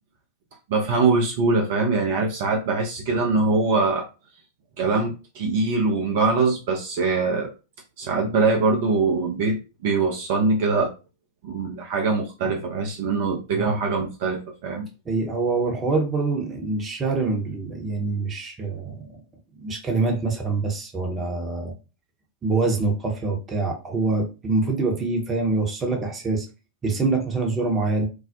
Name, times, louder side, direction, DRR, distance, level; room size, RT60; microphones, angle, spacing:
voice 1, 0.7-4.0 4.8-7.5 8.0-10.9 11.4-14.9, right 3 dB, 50° right, 1 dB, 0.5 m, -23 dB
voice 2, 15.1-19.1 19.6-21.7 22.4-26.4 26.8-28.1, right 3 dB, 20° right, 1 dB, 0.8 m, -25 dB
2.2 x 2.0 x 2.7 m, 0.30 s
figure-of-eight pair, 95°, 0 cm